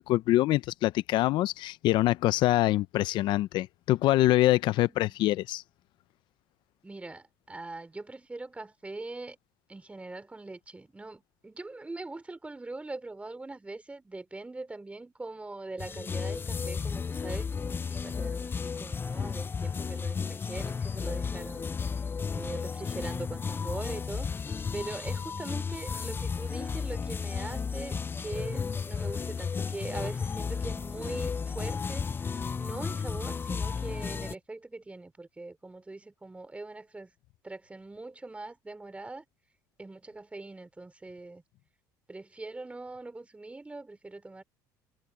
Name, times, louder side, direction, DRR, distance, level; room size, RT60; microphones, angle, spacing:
voice 1, 0.0-5.6, left 16 dB, 65° left, 0.6 m, -25 dB
voice 2, 6.8-9.4 9.7-21.7 22.3-24.3 24.7-32.1 32.6-37.1 37.4-39.2 39.8-41.4 42.1-44.4, right 2 dB, 15° right, 3.5 m, -42 dB
sound 1, 15.8-34.3, left 5 dB, 25° left, 0.5 m, -33 dB
supercardioid pair, 85°, 8 cm